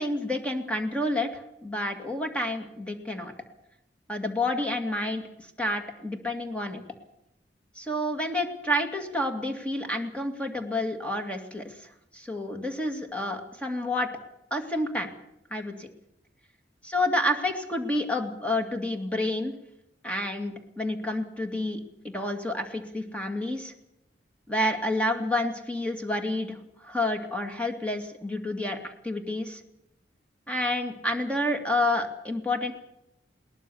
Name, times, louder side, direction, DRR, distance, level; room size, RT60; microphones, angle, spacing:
voice 1, 0.0-3.3 4.1-5.2 5.6-6.8 7.8-11.8 12.1-14.1 14.5-15.1 15.5-15.9 16.8-19.5 20.0-21.8 22.0-23.7 24.5-29.6 30.5-32.7, left 1 dB, 5° left, 5 dB, 2.4 m, -29 dB
21.5 x 19.0 x 7.2 m, 0.83 s
head